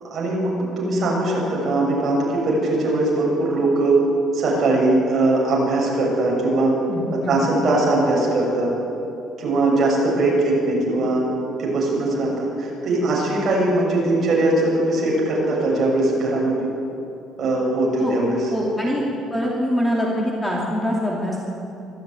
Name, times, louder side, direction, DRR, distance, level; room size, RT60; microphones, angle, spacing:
voice 1, 0.1-4.0 4.3-6.7 7.3-8.7 9.4-11.3 11.6-16.7 17.4-18.4 18.8-19.1, right 2 dB, 35° right, -3 dB, 7.0 m, -20 dB
voice 2, 6.9-7.4 18.0-18.2 18.5-19.0 19.3-21.5, equal, 10° left, -3 dB, 2.6 m, -24 dB
24.5 x 14.0 x 9.4 m, 2.8 s
cardioid pair, 165°, 0 cm